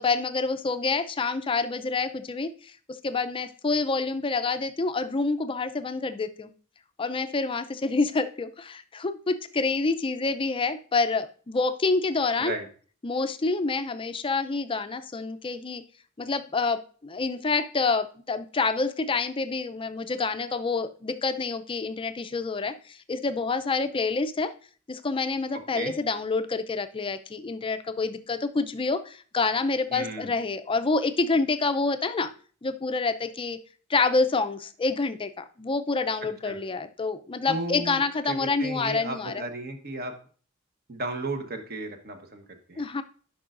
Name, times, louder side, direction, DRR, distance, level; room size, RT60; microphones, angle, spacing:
voice 1, 0.0-6.5 7.0-12.5 13.0-15.8 16.2-24.5 24.9-32.3 32.6-33.6 33.9-39.4 42.8-43.0, left 3 dB, 25° left, 10 dB, 0.4 m, -27 dB
voice 2, 29.9-30.3 36.4-36.6 37.5-38.0 38.3-40.1 40.9-42.8, right 2 dB, 45° right, 5 dB, 1.1 m, -34 dB
10.5 x 5.4 x 2.5 m, 0.41 s
head